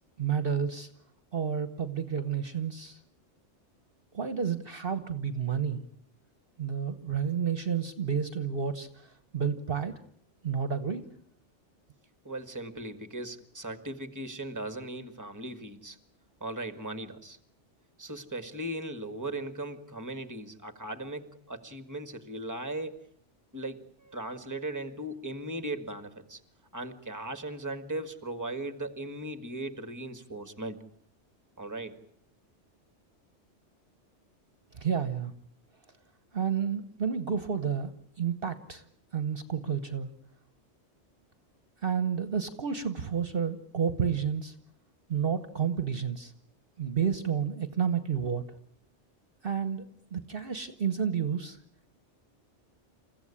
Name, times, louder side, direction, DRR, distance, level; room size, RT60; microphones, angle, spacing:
voice 1, 0.2-0.9 1.3-3.0 4.1-5.8 6.6-10.0 10.4-11.0 34.7-35.3 36.3-37.9 38.2-38.8 39.1-40.1 41.8-44.5 45.1-46.3 46.8-48.4 49.4-49.8 50.1-51.6, right 7 dB, 50° right, 10 dB, 1.3 m, -30 dB
voice 2, 12.2-16.0 16.4-17.4 18.0-23.1 23.5-26.4 26.7-30.8 31.6-32.0, right 1 dB, 15° right, 9 dB, 1.8 m, -38 dB
29.0 x 15.0 x 9.9 m, 0.66 s
omnidirectional pair, 1.2 m